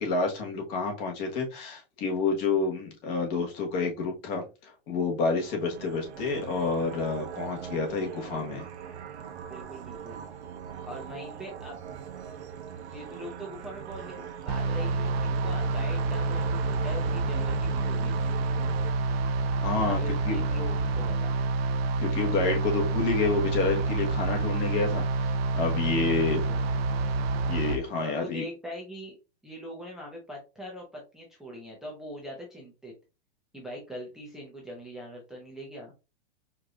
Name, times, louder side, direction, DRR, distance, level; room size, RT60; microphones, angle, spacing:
voice 1, 0.0-8.7 19.6-20.4 22.0-26.4 27.4-28.4, left 4 dB, 40° left, 1 dB, 1.4 m, -29 dB
sound 1, 5.4-18.9, right 8 dB, 85° right, 1.0 m, -41 dB
voice 2, 9.5-10.2 10.8-11.8 12.8-18.3 19.7-21.4 25.9-26.6 28.0-29.2 29.4-32.9 33.5-35.9, equal, ahead, -3 dB, 0.6 m, -42 dB
sound 2, 14.5-27.8, right 3 dB, 65° right, 0.7 m, -28 dB
4.6 x 2.7 x 2.5 m, 0.29 s
hypercardioid pair, 140°, 33 cm